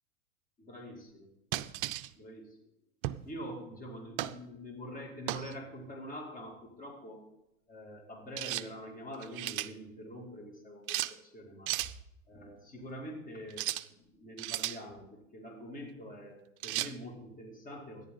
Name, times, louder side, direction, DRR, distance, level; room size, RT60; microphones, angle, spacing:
voice 1, 0.6-1.3 2.2-2.6 3.2-7.2 7.7-11.7 12.3-13.6 14.1-18.0, equal, 20° left, 1 dB, 2.7 m, -45 dB
sound 1, 1.5-2.1 3.0-3.3 4.2-4.4 5.3-5.5 8.4-8.7 9.1-9.7 10.9-11.1 11.7-11.9 13.5-13.9 14.4-14.8 16.6-16.9, right 15 dB, 40° right, 0.5 m, -35 dB
14.0 x 10.5 x 3.9 m, 0.85 s
hypercardioid pair, 120°, 41 cm